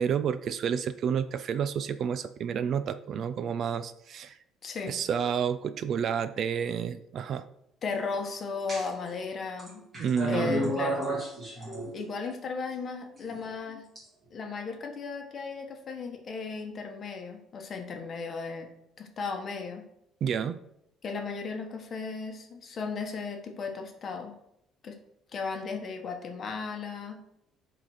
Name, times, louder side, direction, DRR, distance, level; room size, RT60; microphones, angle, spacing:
voice 1, 0.0-4.4 4.9-7.5 10.0-10.7 20.2-20.6, right 7 dB, 40° right, 12 dB, 0.4 m, -30 dB
voice 2, 4.6-4.9 7.8-9.8 10.3-11.1 11.4-11.6 11.9-13.9 14.3-18.7 19.0-19.8 21.0-24.3 24.8-25.0 25.3-27.2, left 4 dB, 30° left, 4 dB, 1.2 m, -35 dB
sound 1, 8.7-9.1 9.6-12.3 13.2-14.0, equal, 20° right, 2.9 m, -33 dB
10.5 x 4.0 x 4.8 m, 0.78 s
cardioid pair, 170°, 0 cm